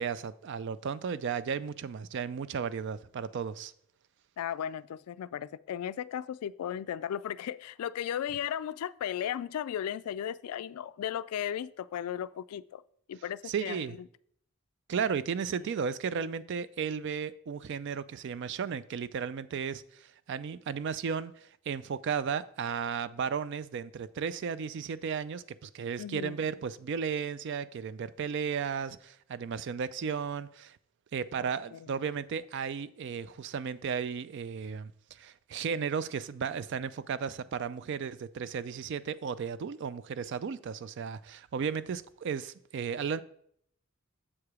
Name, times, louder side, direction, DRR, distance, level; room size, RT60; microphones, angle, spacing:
voice 1, 0.0-3.7 13.4-14.0 14.9-30.8 31.1-43.2, right 6 dB, 55° right, 0.3 m, -34 dB
voice 2, 4.4-12.8 13.1-14.0 26.0-26.4 31.4-31.9, left 9 dB, 90° left, 0.3 m, -36 dB
7.3 x 4.8 x 4.8 m
head